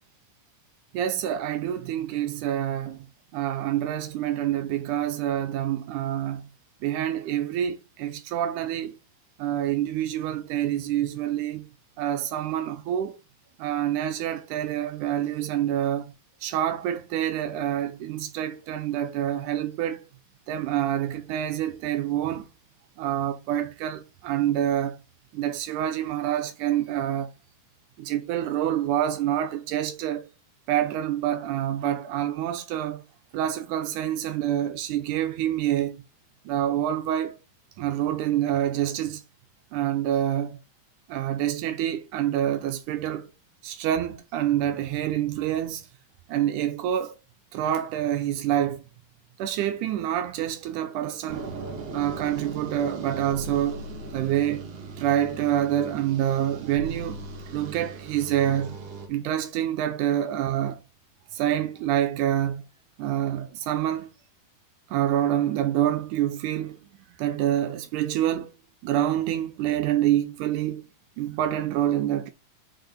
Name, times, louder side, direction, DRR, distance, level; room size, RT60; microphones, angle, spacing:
voice 1, 0.9-3.1 3.3-6.5 6.8-9.0 9.4-11.7 12.0-13.2 13.6-16.1 16.4-20.1 20.5-22.5 23.0-25.0 25.3-27.3 28.0-30.3 30.7-33.0 33.3-36.0 36.5-37.4 37.8-39.2 39.7-40.6 41.1-43.3 43.6-45.8 46.3-47.2 47.5-48.8 49.4-51.5 51.9-53.9 54.1-54.7 55.0-57.2 57.5-58.8 59.1-60.8 61.3-62.6 63.0-64.1 64.9-66.8 67.2-68.5 68.8-70.8 71.2-72.3, right 11 dB, 85° right, 2.2 m, -27 dB
sound 1, 51.3-59.1, right 3 dB, 55° right, 2.2 m, -38 dB
6.7 x 5.4 x 4.2 m
omnidirectional pair, 3.6 m